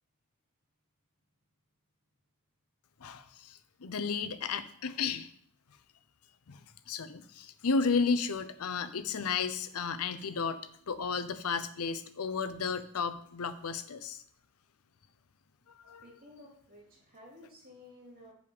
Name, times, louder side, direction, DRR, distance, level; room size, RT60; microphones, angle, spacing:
voice 1, 3.0-5.3 6.5-6.6 6.9-10.6 10.9-14.2 15.8-16.0, left 5 dB, 90° left, 11 dB, 0.6 m, -33 dB
voice 2, 16.0-18.3, left 1 dB, 40° right, -3 dB, 2.4 m, -54 dB
7.1 x 5.2 x 5.0 m, 0.62 s
head